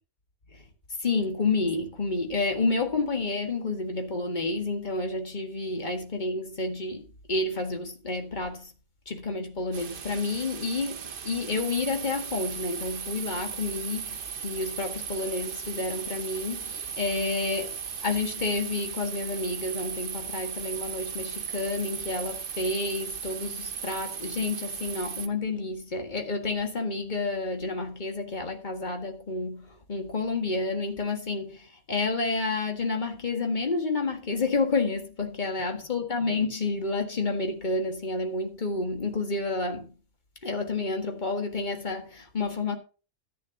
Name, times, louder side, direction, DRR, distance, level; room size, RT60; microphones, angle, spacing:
voice 1, 1.0-8.7 9.1-17.7 18.0-40.0 40.4-42.8, left 3 dB, 30° left, 1.9 m, -30 dB
sound 1, 9.7-25.3, right 7 dB, 45° right, 0.9 m, -37 dB
14.0 x 9.3 x 2.8 m
omnidirectional pair, 1.5 m